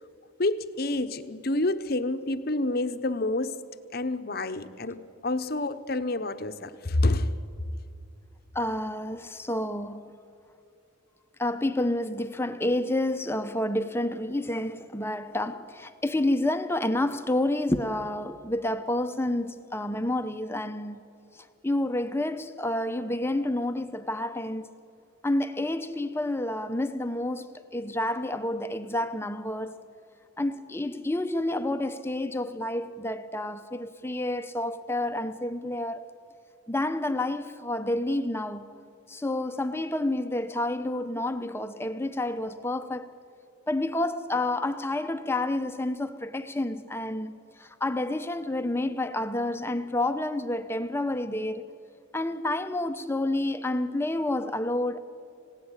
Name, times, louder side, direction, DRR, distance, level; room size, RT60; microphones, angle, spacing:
voice 1, 0.4-3.7 3.9-7.4, left 2 dB, 45° left, 1.0 m, -28 dB
voice 2, 8.5-10.1 11.4-21.0 21.6-24.7 25.2-29.8 30.4-36.1 36.7-38.7 39.1-43.1 43.7-51.7 52.1-55.0, left 1 dB, 10° left, 0.8 m, -29 dB
27.5 x 17.0 x 9.9 m
head